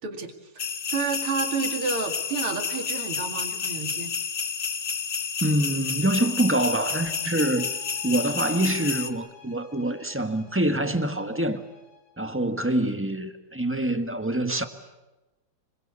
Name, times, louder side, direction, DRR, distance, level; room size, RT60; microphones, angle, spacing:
voice 1, 0.0-4.1, right 5 dB, 90° right, 3.3 m, -31 dB
sound 1, 0.6-9.1, left 6 dB, 40° left, 1.5 m, -30 dB
voice 2, 5.4-7.7 8.0-11.6 12.2-14.6, right 1 dB, 5° right, 1.3 m, -25 dB
sound 2, 6.9-12.2, left 7 dB, 70° left, 7.3 m, -52 dB
26.5 x 22.5 x 8.7 m
omnidirectional pair, 2.3 m